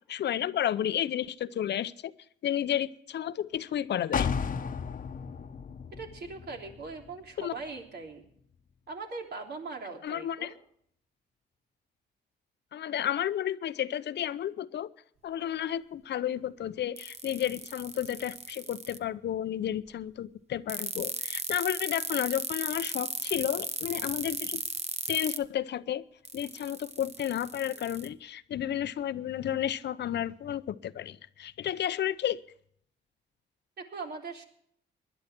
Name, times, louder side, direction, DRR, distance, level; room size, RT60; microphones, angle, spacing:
voice 1, 0.1-2.1 2.4-4.3 7.4-7.5 10.0-10.5 12.7-14.9 15.2-24.6 25.1-26.0 26.3-32.4, left 10 dB, 60° left, 15 dB, 0.8 m, -32 dB
sound 1, 4.1-7.9 8.2-8.3, left 6 dB, 40° left, 1.1 m, -34 dB
voice 2, 6.0-8.2 8.9-10.5 33.8-34.4, right 4 dB, 55° right, 2 dB, 3.4 m, -40 dB
sound 2, 17.0-19.0 20.7-25.4 26.3-28.1, right 4 dB, 35° right, 1.1 m, -35 dB
20.0 x 11.0 x 4.5 m, 0.67 s
cardioid pair, 90°, 20 cm